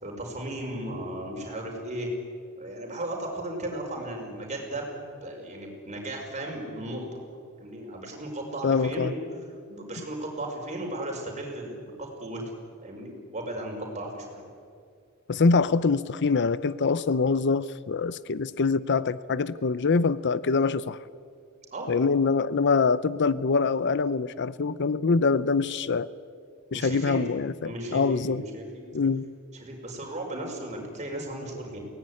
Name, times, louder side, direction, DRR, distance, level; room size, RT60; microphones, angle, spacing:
voice 1, 0.0-2.1 2.6-4.9 5.2-7.2 7.6-9.2 9.7-12.4 12.8-14.4 21.7-21.9 26.7-27.2 27.6-28.8 29.5-31.8, right 1 dB, 35° right, 0 dB, 5.4 m, -35 dB
voice 2, 8.6-9.1 15.3-21.0 21.9-26.1 26.7-28.4 28.9-29.3, left 4 dB, 55° left, 17 dB, 0.6 m, -24 dB
22.5 x 18.5 x 9.8 m, 2.2 s
head